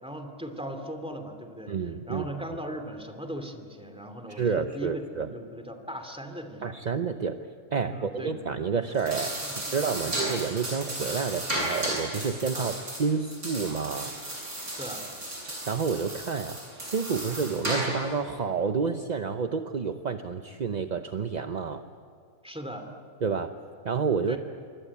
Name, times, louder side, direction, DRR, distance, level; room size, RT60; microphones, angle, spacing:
voice 1, 0.0-6.8 7.9-8.4 9.4-9.7 10.0-10.2 12.5-12.7 14.7-15.1 22.4-22.9 24.3-24.4, equal, 5° right, 5 dB, 2.6 m, -39 dB
voice 2, 1.7-2.3 4.3-5.3 6.6-9.3 9.7-14.1 15.5-21.8 23.2-23.5 23.8-24.4, right 5 dB, 40° right, 7 dB, 0.6 m, -29 dB
sound 1, 8.9-18.1, right 1 dB, 65° right, 8.4 m, -34 dB
27.0 x 23.5 x 8.5 m, 2.2 s
omnidirectional pair, 1.6 m